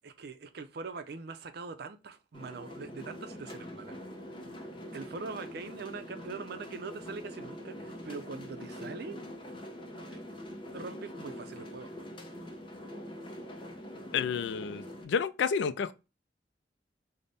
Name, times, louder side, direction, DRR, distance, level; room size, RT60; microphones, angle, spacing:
voice 1, 0.0-4.0 4.9-9.2 10.1-10.2 10.7-11.9, right 4 dB, 60° right, 0.5 m, -42 dB
sound 1, 2.3-15.0, equal, 30° left, 0.6 m, -44 dB
voice 2, 14.1-15.9, left 6 dB, 75° left, 0.3 m, -30 dB
4.0 x 2.1 x 3.3 m
head